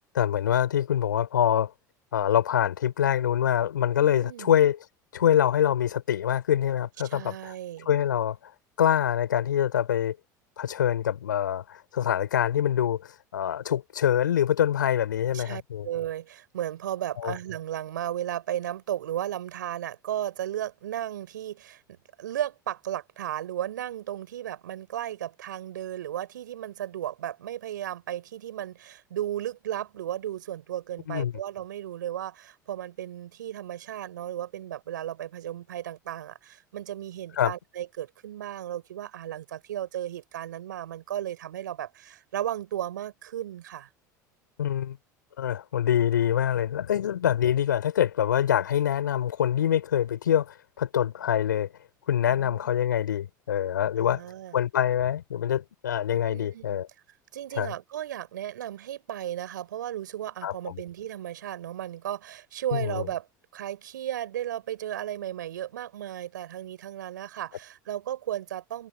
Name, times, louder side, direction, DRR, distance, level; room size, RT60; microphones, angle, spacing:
voice 1, 0.1-1.7 2.1-4.8 5.1-7.5 7.9-8.5 8.8-10.2 10.6-15.9 17.2-17.3 31.1-31.3 37.4-37.5 44.6-45.0 45.4-51.7 52.1-54.2 54.5-56.9 57.6-57.7 60.4-60.8 62.7-63.0, left 10 dB, 75° left, 5.4 m, -25 dB
voice 2, 4.1-4.6 7.0-7.9 15.3-43.9 52.3-52.8 54.0-54.6 56.1-56.8 57.3-63.3 63.5-68.9, right 11 dB, 75° right, 4.4 m, -35 dB
figure-of-eight pair, 75°, 10 cm